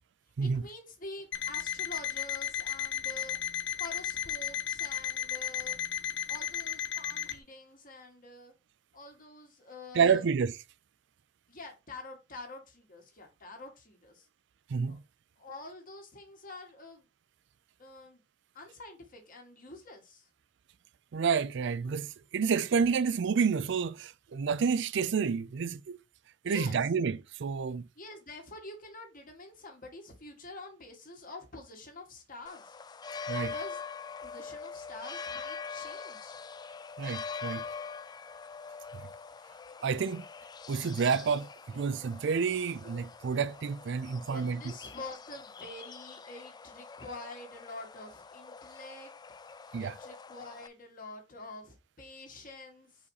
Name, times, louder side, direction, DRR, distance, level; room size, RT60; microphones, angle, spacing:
voice 1, 0.4-3.4 3.7-5.8 6.3-8.5 8.9-10.2 11.5-14.3 14.9-15.0 15.4-17.1 17.8-18.2 18.5-20.3 26.4-26.8 28.0-32.7 33.3-33.8 34.2-36.4 44.2-49.1 49.5-53.1, left 2 dB, 45° left, 1.9 m, -47 dB
Alarm, 1.3-7.4, left 9 dB, 65° left, 0.8 m, -34 dB
voice 2, 9.9-10.5 14.7-15.0 21.1-26.0 26.4-27.9 33.3-33.5 37.0-37.6 39.8-40.3 40.7-44.7 49.7-49.9, right 6 dB, 65° right, 0.4 m, -29 dB
sound 1, 32.5-50.7, left 5 dB, 20° left, 0.3 m, -44 dB
4.9 x 4.2 x 4.7 m
head